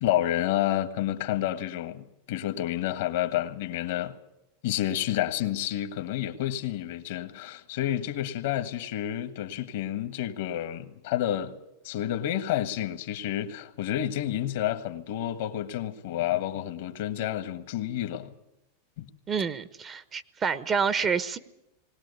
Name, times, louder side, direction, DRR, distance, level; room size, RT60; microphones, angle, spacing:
voice 1, 0.0-4.2 4.6-11.6 11.8-18.4 19.0-19.1, left 12 dB, 70° left, 1.5 m, -30 dB
voice 2, 19.3-21.4, right 6 dB, 30° right, 1.0 m, -28 dB
20.5 x 18.5 x 8.3 m
hypercardioid pair, 105°, 0 cm